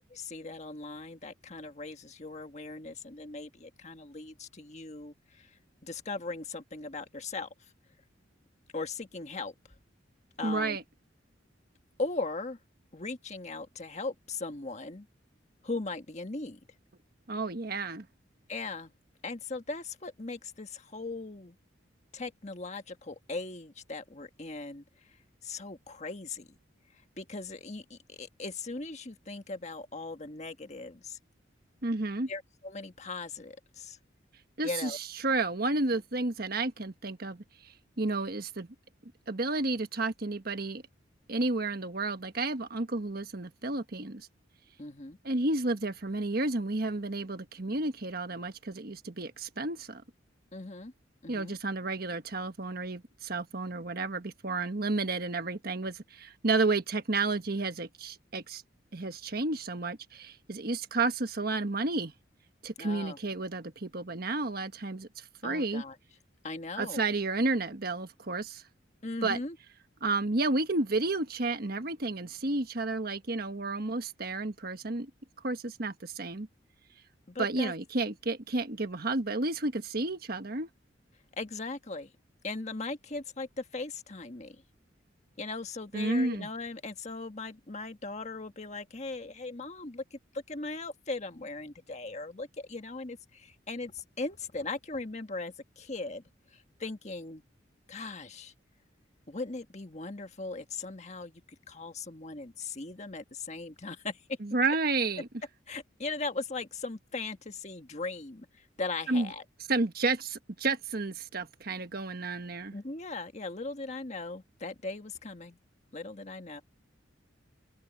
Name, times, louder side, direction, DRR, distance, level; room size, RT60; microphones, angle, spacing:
voice 1, 0.1-7.7 8.7-9.5 10.4-10.8 12.0-12.6 12.9-15.1 15.6-16.6 18.5-18.9 19.2-21.6 22.1-24.8 25.4-26.5 27.2-31.2 32.3-34.0 34.6-35.0 44.8-45.2 50.5-50.9 51.2-51.6 62.8-63.2 65.4-65.9 66.4-67.0 69.0-69.6 77.3-77.7 81.3-82.1 82.4-84.6 85.4-90.2 90.5-96.2 96.5-97.4 97.9-98.5 99.3-104.4 105.7-109.4 112.7-115.6 115.9-116.6, left 3 dB, 35° left, 1.5 m, -39 dB
voice 2, 10.4-10.8 17.3-18.1 31.8-32.3 34.6-38.7 39.3-40.8 41.3-44.3 45.2-50.0 51.3-58.6 58.9-62.1 62.6-65.8 66.8-68.6 69.2-69.4 70.0-75.1 75.4-76.5 77.4-80.7 85.9-86.5 104.4-105.3 109.1-109.3 109.7-112.7, right 3 dB, 50° right, 1.4 m, -31 dB
open air
head